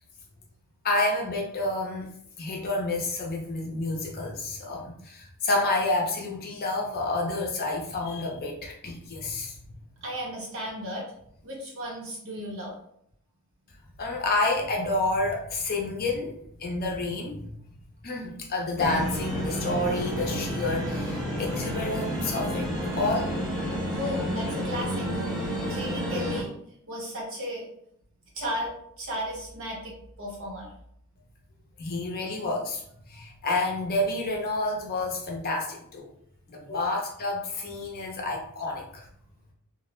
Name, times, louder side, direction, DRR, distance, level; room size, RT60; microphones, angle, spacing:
voice 1, 0.8-2.1 2.4-9.6 14.0-17.6 18.0-23.3 31.8-32.8 33.1-36.1 36.5-39.0, left 2 dB, 45° left, 0 dB, 0.5 m, -29 dB
voice 2, 10.0-11.0 11.4-12.7 23.9-25.1 25.4-26.5 26.9-27.6 28.3-30.7, equal, 65° right, -3 dB, 0.9 m, -35 dB
sound 1, 18.8-26.4, equal, 20° right, 0.8 m, -30 dB
2.4 x 2.0 x 3.0 m, 0.69 s
head